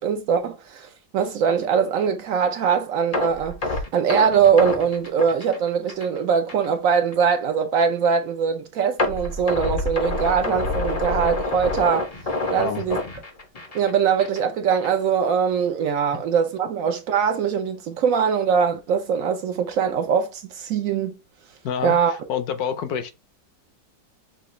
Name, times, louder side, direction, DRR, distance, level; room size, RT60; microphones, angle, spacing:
voice 1, 0.0-12.1 12.5-13.0 13.7-21.2 21.8-22.2, right 7 dB, 70° right, 0.8 m, -22 dB
sound 1, 3.1-6.2 6.5-6.7 7.1-7.2 9.0-13.9 14.2-14.4 14.8-14.9, left 2 dB, 50° left, 0.4 m, -27 dB
voice 2, 21.6-23.1, left 7 dB, 65° left, 1.1 m, -27 dB
5.9 x 2.4 x 3.1 m
omnidirectional pair, 1.9 m